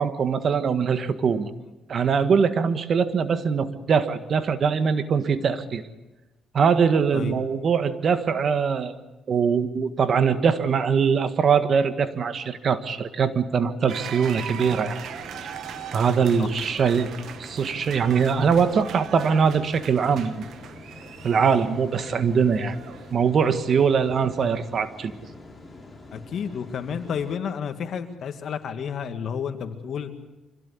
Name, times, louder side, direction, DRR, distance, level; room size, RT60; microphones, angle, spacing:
voice 1, 0.0-1.5 1.9-5.8 6.5-8.9 9.3-15.0 15.4-15.6 15.9-17.1 17.4-20.4 21.2-22.8 23.1-25.1, right 6 dB, 55° right, 10 dB, 1.6 m, -22 dB
sound 1, 13.9-23.1, right 9 dB, 70° right, 1.5 m, -40 dB
sound 2, 15.0-27.3, left 2 dB, 20° left, 5.1 m, -45 dB
voice 2, 26.1-30.1, left 7 dB, 65° left, 7 dB, 2.2 m, -31 dB
25.5 x 17.0 x 8.5 m, 1.1 s
cardioid pair, 90°, 0 cm